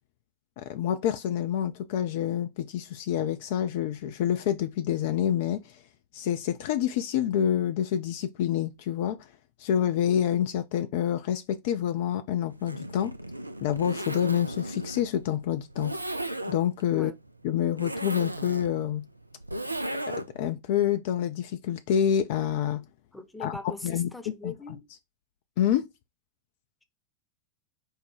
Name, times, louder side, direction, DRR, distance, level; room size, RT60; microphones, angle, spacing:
voice 1, 0.6-5.7 6.1-9.3 9.6-13.1 13.6-16.0 16.5-17.1 17.4-19.1 20.1-22.8 23.4-23.6 23.8-24.1 24.4-24.5 25.6-25.9, left 10 dB, 50° left, 0.4 m, -27 dB
Zipper (clothing), 12.5-20.5, right 1 dB, 85° right, 0.3 m, -36 dB
voice 2, 23.1-24.9, left 2 dB, 5° left, 0.8 m, -40 dB
4.7 x 2.2 x 4.6 m
figure-of-eight pair, 90°, 0 cm